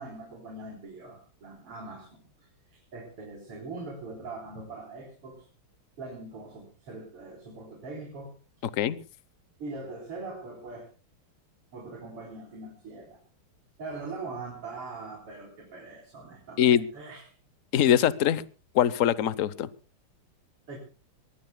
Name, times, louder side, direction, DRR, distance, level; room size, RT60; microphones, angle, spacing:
voice 1, 0.0-5.4 6.0-8.3 9.6-10.9 11.7-13.2 13.8-17.3 20.7-20.8, right 3 dB, 85° right, 0 dB, 4.9 m, -42 dB
voice 2, 17.7-18.4 18.7-19.7, left 10 dB, 60° left, 17 dB, 0.9 m, -22 dB
24.0 x 20.0 x 2.2 m, 0.36 s
omnidirectional pair, 2.4 m